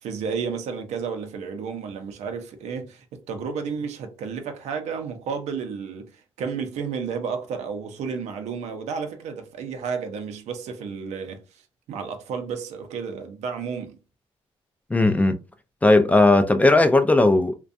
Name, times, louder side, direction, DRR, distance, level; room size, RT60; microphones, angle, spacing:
voice 1, 0.0-11.4 11.9-14.0, right 6 dB, 80° right, 0.6 m, -32 dB
voice 2, 14.9-15.4 15.8-17.6, left 2 dB, 15° left, 0.3 m, -17 dB
2.4 x 2.2 x 2.5 m
cardioid pair, 85°, 11 cm